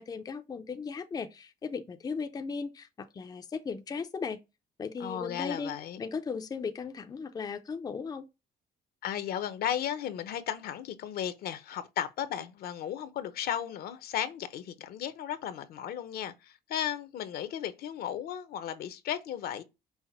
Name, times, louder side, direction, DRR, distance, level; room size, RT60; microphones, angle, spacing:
voice 1, 0.0-4.4 4.8-8.3, left 5 dB, 25° left, 0.5 m, -37 dB
voice 2, 5.0-6.0 9.0-19.6, left 10 dB, 65° left, 0.7 m, -35 dB
5.7 x 2.1 x 4.3 m
cardioid pair, 110°, 17 cm